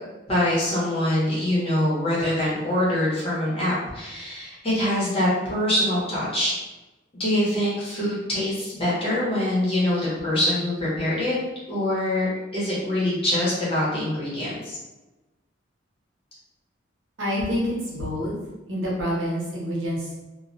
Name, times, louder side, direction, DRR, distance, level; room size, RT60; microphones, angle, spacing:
voice 1, 0.3-6.5 7.2-11.4 11.7-14.8, left 1 dB, 30° left, -8 dB, 0.9 m, -24 dB
voice 2, 17.2-18.4 18.7-20.3, equal, 90° right, -5 dB, 0.8 m, -27 dB
2.2 x 2.1 x 2.6 m, 1.1 s
head